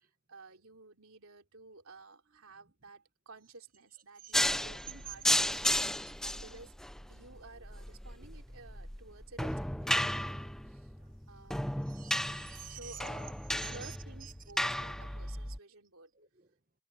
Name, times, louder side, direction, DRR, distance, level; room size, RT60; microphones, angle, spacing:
voice 1, 0.0-6.8 7.1-10.9 11.3-11.6 12.6-16.1, right 3 dB, 85° right, 3.3 m, -53 dB
voice 2, 4.2-4.6 5.1-5.2 5.5-6.2 8.2-8.3 10.9-11.1 11.9-13.0 13.6-14.3 16.1-16.5, right 11 dB, 40° right, 1.5 m, -50 dB
sound 1, 4.3-15.6, left 1 dB, ahead, 0.6 m, -34 dB
head